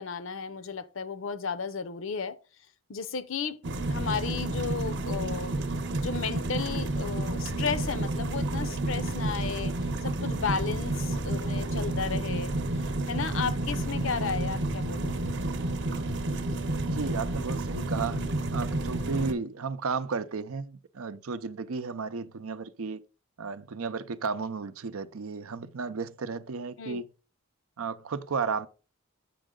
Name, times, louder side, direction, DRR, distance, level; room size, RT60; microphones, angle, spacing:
voice 1, 0.0-2.4 2.9-3.6 3.9-5.6 6.0-9.7 10.0-12.5 13.1-15.3 26.8-27.0, left 6 dB, 60° left, 0.6 m, -34 dB
sound 1, 3.6-19.3, right 2 dB, 55° right, 0.9 m, -30 dB
voice 2, 16.8-18.2 18.5-23.0 23.4-27.1 27.8-28.7, right 5 dB, 75° right, 0.6 m, -33 dB
8.5 x 6.2 x 3.7 m
head